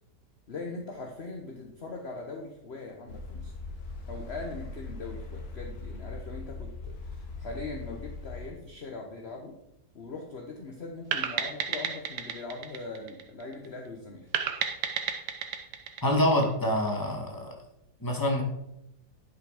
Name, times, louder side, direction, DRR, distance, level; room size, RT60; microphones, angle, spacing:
voice 1, 0.5-3.5 4.1-9.5 9.9-14.3, left 3 dB, 40° left, 1 dB, 1.3 m, -41 dB
sound 1, 3.1-8.5, left 3 dB, 65° left, 1.8 m, -40 dB
sound 2, 11.1-13.7 14.3-16.9, right 7 dB, 80° right, 1.5 m, -32 dB
voice 2, 16.0-17.5 18.0-18.4, left 1 dB, 10° left, 0 dB, 1.9 m, -26 dB
11.0 x 6.1 x 5.1 m, 0.83 s
omnidirectional pair, 1.8 m